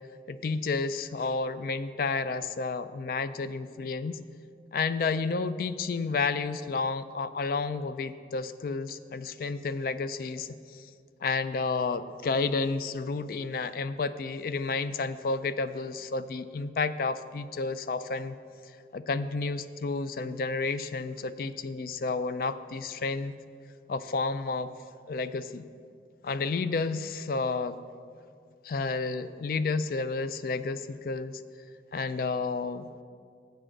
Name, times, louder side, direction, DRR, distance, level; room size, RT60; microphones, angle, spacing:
voice 1, 0.3-4.2 4.7-10.8 11.2-18.4 18.9-23.3 23.9-24.7 25.1-25.6 26.2-27.8 28.6-31.4 31.9-32.9, left 4 dB, 50° left, 13 dB, 0.3 m, -31 dB
8.0 x 6.2 x 6.6 m, 2.2 s
head